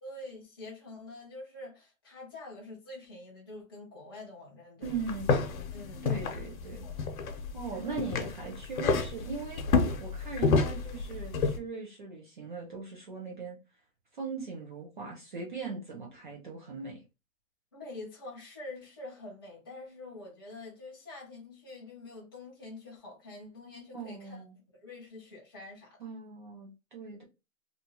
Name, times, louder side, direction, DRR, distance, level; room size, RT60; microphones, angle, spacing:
voice 1, 0.0-5.0 5.7-6.1 6.8-7.1 7.7-8.0 17.7-24.4 24.7-26.0, left 2 dB, 20° left, 0.4 m, -46 dB
Walking On A Wooden Floor, 4.8-11.6, left 4 dB, 80° left, 0.8 m, -30 dB
voice 2, 4.8-5.4 6.0-6.8 7.5-9.6 10.0-13.6 14.1-17.0 23.9-24.5 26.0-27.2, right 4 dB, 35° right, 0.5 m, -39 dB
2.7 x 2.3 x 2.8 m
hypercardioid pair, 175°, 41 cm